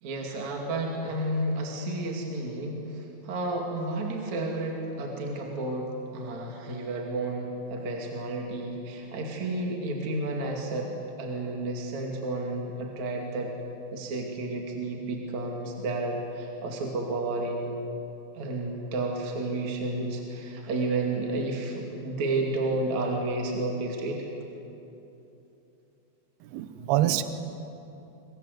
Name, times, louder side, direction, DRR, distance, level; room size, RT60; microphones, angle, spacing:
voice 1, 0.0-10.9 11.2-13.5 13.9-17.9 18.3-24.3, right 2 dB, 45° right, 0 dB, 3.2 m, -31 dB
voice 2, 26.4-27.2, right 13 dB, 70° right, 10 dB, 2.6 m, -26 dB
28.0 x 24.5 x 8.2 m, 3.0 s
omnidirectional pair, 5.6 m